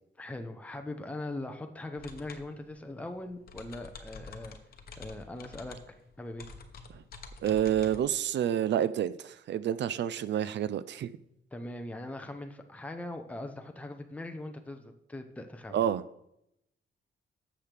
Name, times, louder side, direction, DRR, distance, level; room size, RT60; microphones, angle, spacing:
voice 1, 0.2-4.6 5.0-6.5 11.5-15.8, left 2 dB, 5° left, 5 dB, 0.7 m, -41 dB
sound 1, 2.0-8.0, left 4 dB, 50° left, 1.0 m, -48 dB
voice 2, 7.4-11.1 15.7-16.0, right 10 dB, 65° right, 15 dB, 0.5 m, -29 dB
12.0 x 7.5 x 3.4 m, 0.80 s
wide cardioid pair, 155°, 19 cm